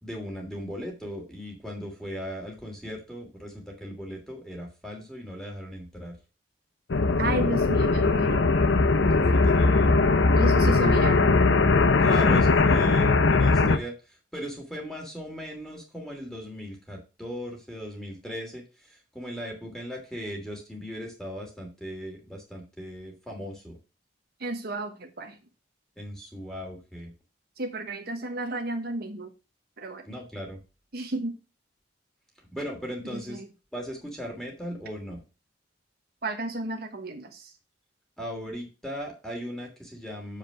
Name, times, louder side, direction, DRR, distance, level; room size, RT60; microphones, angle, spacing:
voice 1, 0.0-6.2 9.3-9.9 12.0-13.9 14.3-23.8 26.0-27.1 30.0-30.6 32.5-33.4 33.7-35.2 38.2-40.4, equal, 5° left, 1 dB, 2.9 m, -38 dB
sound 1, 6.9-13.8, left 3 dB, 85° left, 0.8 m, -20 dB
voice 2, 7.2-8.5 10.4-11.3 24.4-25.3 27.6-29.3 29.8-30.0 30.9-31.4 33.1-33.5 36.2-37.5, right 2 dB, 60° right, 5 dB, 1.2 m, -32 dB
7.5 x 5.0 x 6.0 m, 0.30 s
head